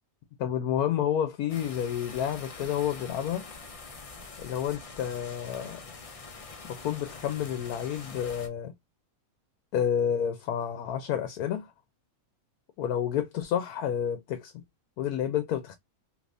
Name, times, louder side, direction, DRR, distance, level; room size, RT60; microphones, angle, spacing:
voice 1, 0.4-3.4 4.4-5.8 6.6-8.7 9.7-11.7 12.8-14.5 15.0-15.8, left 9 dB, 80° left, 1.1 m, -30 dB
sound 1, 1.5-8.5, left 4 dB, 60° left, 0.3 m, -45 dB
3.3 x 2.9 x 2.5 m
omnidirectional pair, 1.5 m